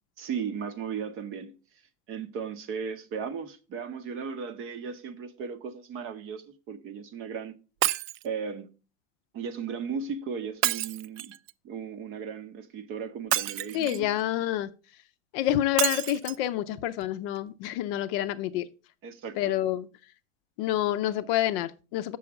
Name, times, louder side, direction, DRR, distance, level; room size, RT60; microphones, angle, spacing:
voice 1, 0.2-1.6 2.1-7.6 8.2-8.7 9.3-11.3 11.6-14.1 19.0-19.6, right 6 dB, 30° right, 0.7 m, -36 dB
Shatter, 7.8-8.3 10.6-11.5 13.3-14.1 15.8-16.4 17.0-17.1 17.4-17.5, right 14 dB, 75° right, 0.5 m, -28 dB
voice 2, 13.7-14.7 15.3-18.7 19.4-19.9 20.6-22.2, left 13 dB, 45° left, 0.6 m, -28 dB
6.9 x 6.2 x 4.6 m
supercardioid pair, 135°, 40 cm